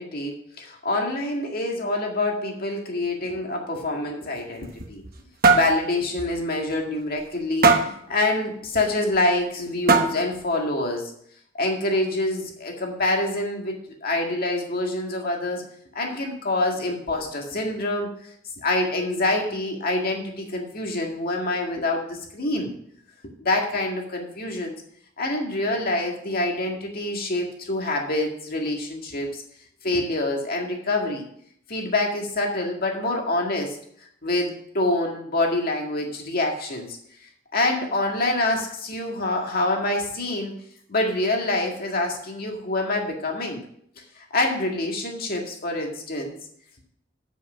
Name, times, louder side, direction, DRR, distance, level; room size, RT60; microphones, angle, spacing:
voice 1, 0.0-5.0 5.5-7.7 8.1-11.1 11.6-15.6 16.0-18.1 18.6-22.7 23.4-24.7 25.2-29.3 29.8-31.3 31.7-33.8 34.2-37.0 37.5-40.5 40.9-43.6 44.2-46.3, left 2 dB, 50° left, 1 dB, 1.9 m, -26 dB
sound 1, 4.4-5.2 5.4-5.7 6.2-6.3 6.7-6.8 7.6-8.0 9.1-9.2 9.9-10.3, right 4 dB, 50° right, 1.1 m, -19 dB
7.8 x 7.0 x 5.7 m, 0.67 s
head